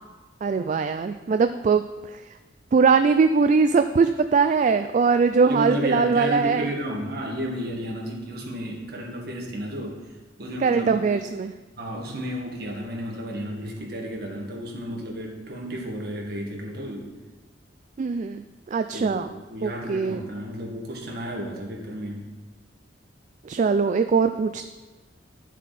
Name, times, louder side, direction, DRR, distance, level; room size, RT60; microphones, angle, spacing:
voice 1, 0.4-1.8 2.7-6.7 10.6-11.5 18.0-18.4 18.7-19.3 19.6-20.2 23.5-24.7, right 5 dB, 40° right, 9 dB, 0.3 m, -21 dB
voice 2, 5.4-10.0 10.4-11.0 11.8-17.1 18.9-22.3, equal, 55° right, -1 dB, 1.9 m, -32 dB
11.5 x 7.2 x 4.2 m, 1.3 s
head